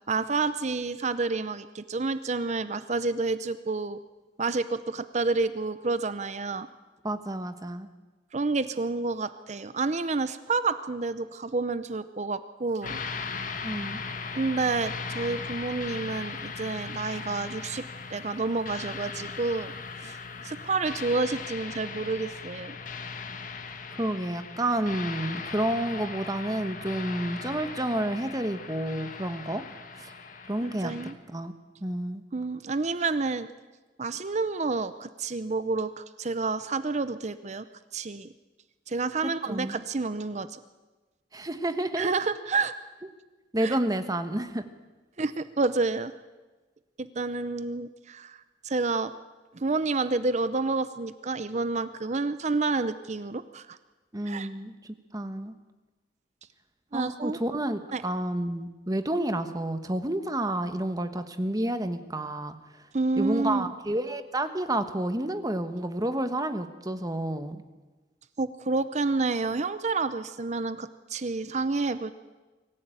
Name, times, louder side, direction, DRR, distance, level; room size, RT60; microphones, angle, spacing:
voice 1, 0.1-4.0 4.4-6.7 8.3-13.0 14.3-19.7 20.0-20.2 20.4-22.8 30.6-31.1 32.3-33.5 34.0-37.6 37.9-38.3 38.9-40.6 42.0-42.7 43.6-43.8 45.2-46.1 47.0-49.2 49.5-53.8 54.3-54.5 56.9-57.4 57.9-58.0 62.9-63.7 68.4-72.1, right 3 dB, 40° right, 13 dB, 0.7 m, -29 dB
voice 2, 7.0-7.9 13.6-14.0 23.9-29.6 30.0-30.1 30.5-30.9 31.3-31.5 31.8-32.2 39.2-39.8 41.3-42.1 43.5-44.6 54.1-55.5 56.9-62.5 63.2-67.6, right 1 dB, 20° right, 9 dB, 1.3 m, -30 dB
sound 1, 12.8-31.1, left 5 dB, 45° left, 1.8 m, -38 dB
24.5 x 15.0 x 9.0 m, 1.2 s
head